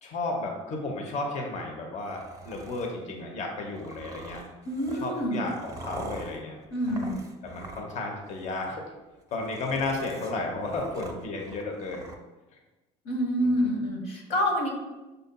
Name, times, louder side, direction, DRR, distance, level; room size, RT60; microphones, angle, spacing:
voice 1, 0.0-4.4 5.0-6.6 6.9-7.1 7.4-8.8 9.3-12.0, left 2 dB, 50° left, 1 dB, 0.8 m, -33 dB
sound 1, 2.0-2.9 3.8-8.0 8.3-8.7 9.2-12.2, right 2 dB, 20° right, 0.6 m, -44 dB
voice 2, 4.6-5.4 6.7-7.2 13.0-14.7, equal, 80° left, -1 dB, 0.9 m, -27 dB
6.7 x 2.6 x 2.2 m, 1.1 s
supercardioid pair, 90°, 16 cm